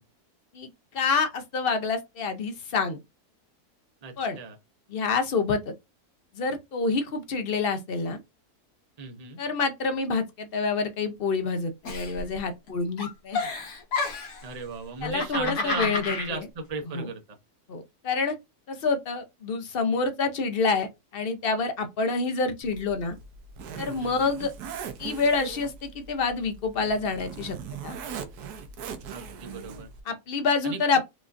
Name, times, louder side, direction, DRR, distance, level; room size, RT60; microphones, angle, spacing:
voice 1, 0.9-3.0 4.2-4.4 4.9-5.7 6.3-8.2 9.4-13.5 15.0-16.4 16.9-17.1 17.7-18.4 18.7-23.2 23.8-24.5 25.0-27.6 27.8-28.0 30.1-31.0, left 4 dB, 55° left, 0.7 m, -27 dB
voice 2, 4.0-4.6 9.0-9.4 14.4-17.2 24.0-24.3 29.1-29.9 30.6-31.0, right 3 dB, 40° right, 0.6 m, -36 dB
Giggle, 11.8-12.7 13.0-14.4 15.0-16.3, left 3 dB, 80° left, 1.8 m, -30 dB
Zipper (clothing), 22.6-30.0, right 6 dB, 90° right, 1.2 m, -40 dB
5.0 x 2.5 x 2.5 m
omnidirectional pair, 1.6 m